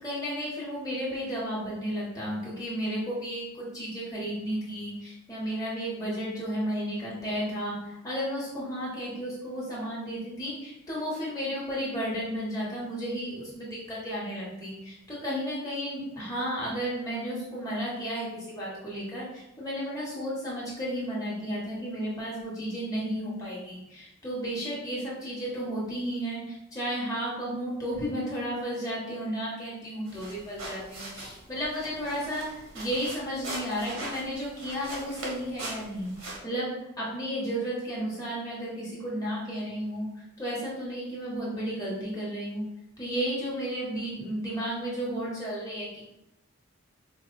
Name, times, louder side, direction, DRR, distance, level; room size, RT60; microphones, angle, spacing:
voice 1, 0.0-42.6 43.0-46.1, equal, 15° left, -7 dB, 1.2 m, -33 dB
sound 1, 30.1-36.4, right 2 dB, 80° right, 1.1 m, -41 dB
4.6 x 2.4 x 2.6 m, 0.86 s
head